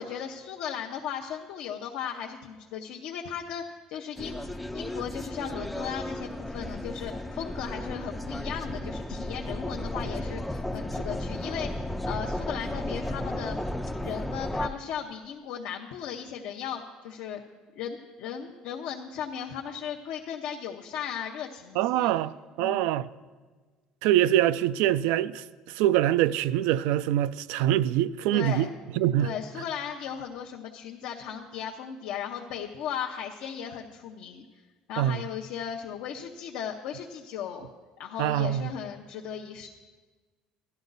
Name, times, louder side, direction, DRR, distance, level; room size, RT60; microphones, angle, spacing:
voice 1, 0.0-13.6 14.0-17.4 17.8-22.1 22.6-22.9 28.3-28.7 29.2-34.4 34.9-37.7 38.0-39.7, left 8 dB, 70° left, 0.7 m, -36 dB
sound 1, 4.2-14.7, left 1 dB, 5° left, 0.4 m, -34 dB
voice 2, 21.8-23.1 24.0-28.7 28.9-29.3 35.0-35.2 38.2-38.7, right 12 dB, 85° right, 0.3 m, -24 dB
12.0 x 11.5 x 4.0 m
cardioid pair, 145°, 2 cm